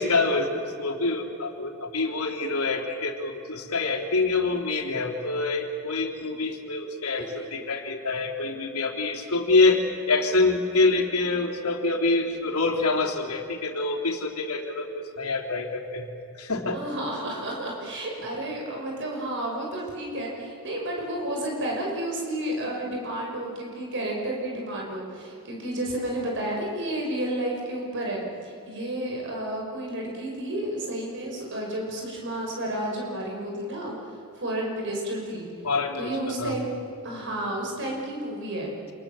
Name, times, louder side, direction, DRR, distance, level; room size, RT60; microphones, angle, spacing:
voice 1, 0.0-16.1 16.3-16.8 35.6-36.5, left 3 dB, 85° left, 2 dB, 3.3 m, -26 dB
voice 2, 16.7-33.9 34.3-35.5 36.0-36.7 37.0-38.7, right 1 dB, 55° right, -1 dB, 6.2 m, -31 dB
29.0 x 27.0 x 7.5 m, 2.7 s
head